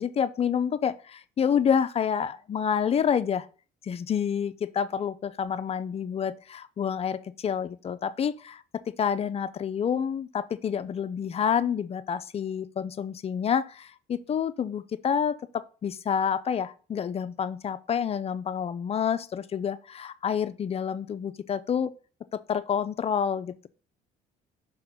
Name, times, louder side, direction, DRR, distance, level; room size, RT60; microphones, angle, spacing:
voice 1, 0.0-3.5 3.8-21.9 22.3-23.7, left 7 dB, 35° left, 0.5 m, -28 dB
6.0 x 3.8 x 5.6 m
cardioid pair, 110°, 17 cm